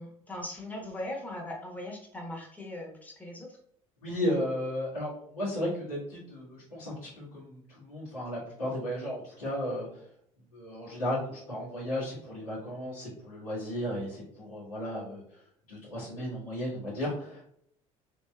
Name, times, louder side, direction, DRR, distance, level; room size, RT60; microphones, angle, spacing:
voice 1, 0.0-3.5, left 1 dB, 10° left, -1 dB, 1.0 m, -39 dB
voice 2, 4.0-10.0 10.5-15.4 15.7-17.4, equal, 90° left, -11 dB, 1.2 m, -34 dB
3.1 x 2.9 x 2.3 m, 0.67 s
hypercardioid pair, 60°, 18 cm